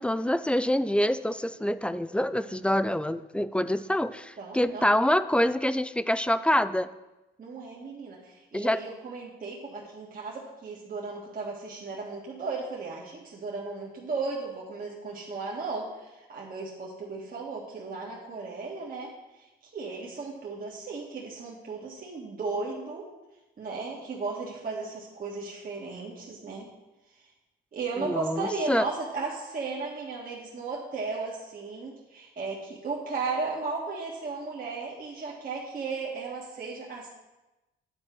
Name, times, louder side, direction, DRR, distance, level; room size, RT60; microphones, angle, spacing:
voice 1, 0.0-6.9 8.5-8.8 28.0-28.8, left 1 dB, 5° left, 14 dB, 0.3 m, -26 dB
voice 2, 4.4-4.9 7.4-19.1 19.4-19.5 19.7-23.0 23.6-26.7 27.7-37.1, right 4 dB, 45° right, -4 dB, 1.7 m, -35 dB
9.8 x 4.4 x 6.2 m, 1.0 s
cardioid pair, 90°, 20 cm